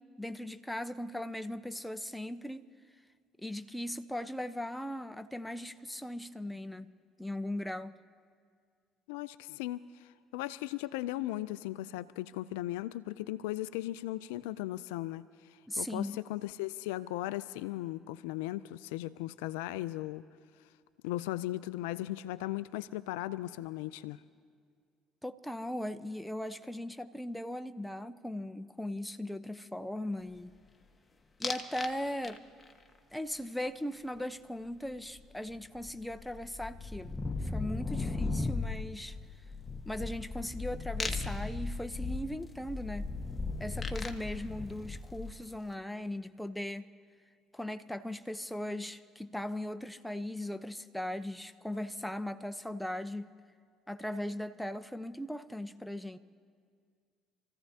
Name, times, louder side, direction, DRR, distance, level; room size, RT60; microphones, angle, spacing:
voice 1, 0.0-2.7 3.4-6.9 7.2-8.0 15.7-16.2 25.2-30.5 31.4-32.4 33.1-39.2 39.9-43.1 43.6-46.8 47.5-53.3 53.9-56.2, left 1 dB, 5° left, 0.8 m, -38 dB
voice 2, 9.1-9.8 10.3-15.3 15.8-20.2 21.0-24.2, left 16 dB, 75° left, 0.4 m, -37 dB
sound 1, 31.4-31.9 32.2-32.7 35.2-35.3 35.5-45.5, left 3 dB, 20° left, 1.4 m, -37 dB
28.0 x 15.0 x 2.8 m
hypercardioid pair, 55°, 0 cm